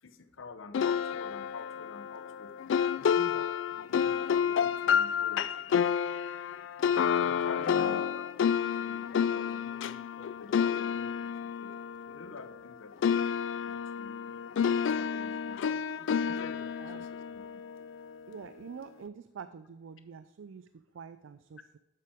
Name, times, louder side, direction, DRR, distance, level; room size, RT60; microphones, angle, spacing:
voice 1, 0.0-2.5 2.9-5.5 7.1-8.3 8.8-11.7 12.1-13.2 13.6-14.5 14.9-17.6, left 4 dB, 80° left, 10 dB, 0.8 m, -48 dB
sound 1, 0.7-12.7 13.0-18.2, left 7 dB, 65° left, 0.3 m, -30 dB
voice 2, 7.5-8.0 16.8-17.1 18.3-21.8, right 6 dB, 70° right, 12 dB, 0.4 m, -46 dB
11.5 x 7.7 x 3.5 m, 1.0 s
head